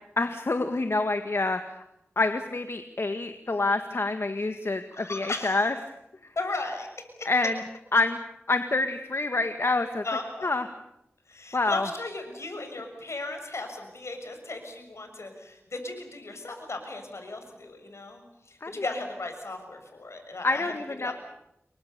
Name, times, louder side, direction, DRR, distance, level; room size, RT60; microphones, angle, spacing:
voice 1, 0.2-1.7 2.1-5.7 7.2-7.6 7.9-8.2 8.5-10.0 10.4-10.6 11.5-11.8 18.6-18.7 20.4-21.1, left 3 dB, 65° left, 7 dB, 1.8 m, -27 dB
voice 2, 4.9-5.7 6.3-6.9 7.2-7.3 10.0-10.5 11.3-20.7 21.0-21.1, left 2 dB, 80° left, 5 dB, 6.6 m, -36 dB
29.0 x 23.5 x 7.0 m, 0.83 s
wide cardioid pair, 55°, 5 cm